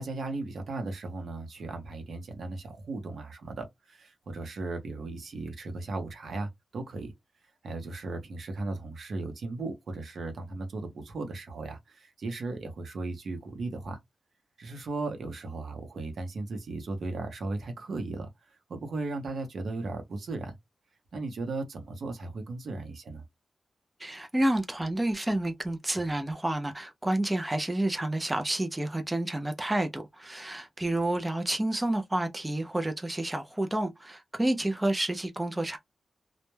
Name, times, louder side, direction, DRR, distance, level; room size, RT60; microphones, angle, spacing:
voice 1, 0.0-7.1 7.6-14.0 14.6-20.6 21.1-23.3, right 3 dB, 70° right, 0.6 m, -36 dB
voice 2, 24.0-35.8, right 1 dB, 15° right, 0.3 m, -29 dB
2.1 x 2.0 x 3.0 m
wide cardioid pair, 135°, 0 cm